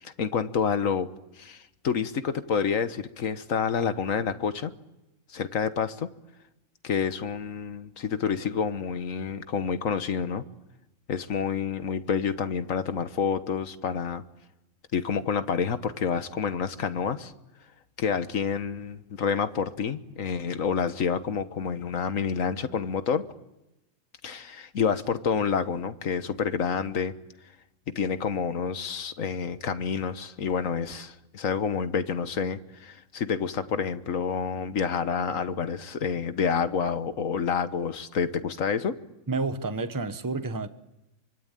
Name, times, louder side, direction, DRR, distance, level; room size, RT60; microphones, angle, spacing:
voice 1, 0.0-1.1 1.4-4.7 5.3-6.1 6.8-10.4 11.1-14.2 14.9-17.3 18.0-23.3 24.2-27.1 27.9-39.0, left 6 dB, 75° left, 1.6 m, -28 dB
voice 2, 39.3-40.7, right 3 dB, 15° right, 1.0 m, -30 dB
26.5 x 25.0 x 9.0 m
omnidirectional pair, 1.4 m